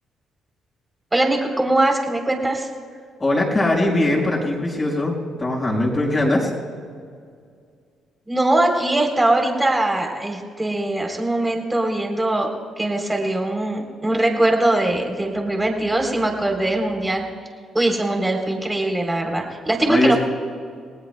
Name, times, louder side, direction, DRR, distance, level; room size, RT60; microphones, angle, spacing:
voice 1, 1.1-2.7 8.3-12.5 12.8-17.3 17.7-20.2, right 1 dB, 15° right, 2 dB, 3.5 m, -21 dB
voice 2, 3.2-6.5 19.9-20.2, left 1 dB, 25° left, -1 dB, 5.2 m, -20 dB
29.5 x 18.5 x 2.3 m, 2.2 s
cardioid pair, 90°, 0 cm